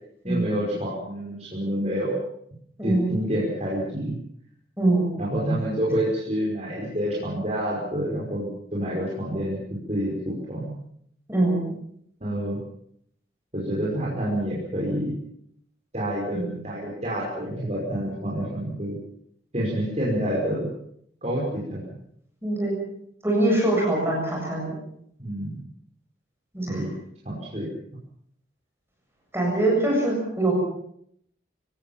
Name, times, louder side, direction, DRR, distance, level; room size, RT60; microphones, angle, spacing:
voice 1, 0.2-2.2 2.8-4.2 5.2-10.7 12.2-12.6 13.5-15.1 15.9-19.0 19.5-20.7 21.2-21.8 25.2-25.6 26.7-26.9 27.3-27.7, equal, 35° right, -5 dB, 5.4 m, -28 dB
voice 2, 2.8-3.1 4.8-5.1 11.3-11.7 16.3-16.6 22.4-22.7 23.2-24.7 26.5-26.8 29.3-30.5, right 2 dB, 10° right, -3 dB, 7.6 m, -23 dB
25.0 x 18.0 x 7.3 m, 0.70 s
head